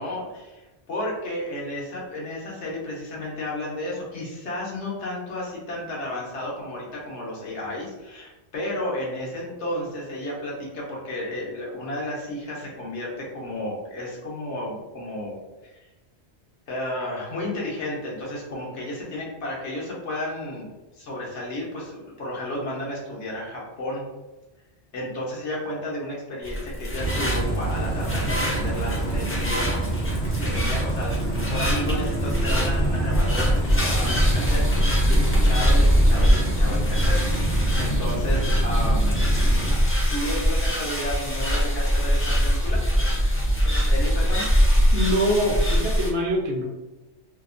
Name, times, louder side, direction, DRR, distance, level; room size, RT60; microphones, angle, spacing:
voice 1, 0.0-15.4 15.6-15.7 16.7-20.7 21.0-24.0 24.9-29.8 30.5-39.2 39.7-42.8 43.6-44.5, left 1 dB, 85° left, -3 dB, 1.1 m, -32 dB
sound 1, 26.4-46.1, equal, 20° left, 0.3 m, -22 dB
sound 2, 27.0-39.8, right 2 dB, 70° left, 1.0 m, -27 dB
voice 2, 44.9-46.6, equal, 65° right, -2 dB, 0.8 m, -24 dB
2.8 x 2.0 x 2.4 m, 1.1 s
omnidirectional pair, 1.2 m